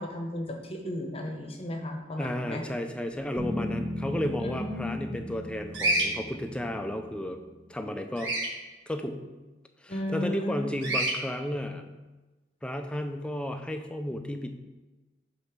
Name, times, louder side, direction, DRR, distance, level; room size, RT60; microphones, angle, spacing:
voice 1, 0.0-2.6 4.4-5.2 9.9-10.7, left 1 dB, 30° left, 3 dB, 0.9 m, -34 dB
voice 2, 2.2-7.4 7.7-8.3 8.9-9.2 9.8-11.8 12.6-14.6, left 1 dB, 5° left, 6 dB, 0.4 m, -33 dB
sound 1, 3.4-7.7, left 1 dB, 15° right, 1.0 m, -37 dB
Bird vocalization bird call bird song, 5.7-6.1 8.2-8.5 10.8-11.1, right 1 dB, 70° right, 1.3 m, -26 dB
5.2 x 4.0 x 5.9 m, 1.2 s
head